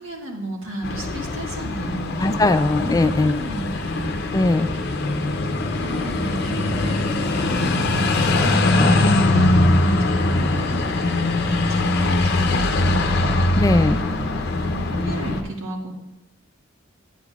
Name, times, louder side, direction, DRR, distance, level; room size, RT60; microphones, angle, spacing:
voice 1, 0.0-2.4 2.7-4.4 4.7-8.9 9.3-13.0 13.9-15.9, right 1 dB, 80° right, -1 dB, 1.7 m, -34 dB
sound 1, 0.8-15.4, left 2 dB, 55° left, 0.6 m, -21 dB
voice 2, 2.2-3.4 4.3-4.7 8.8-9.0 13.5-14.0, left 2 dB, 15° left, 10 dB, 0.3 m, -19 dB
9.8 x 9.1 x 2.4 m, 0.92 s
head